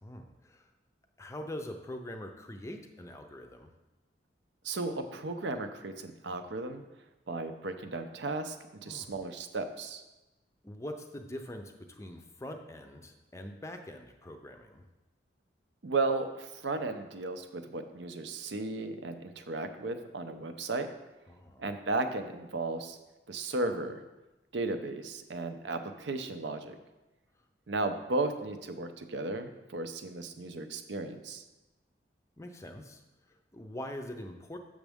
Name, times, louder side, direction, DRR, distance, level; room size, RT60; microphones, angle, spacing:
voice 1, 0.0-0.7 1.2-3.7 8.8-9.1 10.6-14.8 21.3-21.6 32.4-33.0 33.3-34.6, left 1 dB, 15° left, 5 dB, 0.5 m, -43 dB
voice 2, 4.6-6.8 7.3-8.6 8.8-10.0 15.8-20.9 21.6-23.0 23.3-24.0 24.5-26.8 27.7-31.4, right 3 dB, 75° right, 8 dB, 0.6 m, -35 dB
7.1 x 6.3 x 3.5 m, 1.0 s
head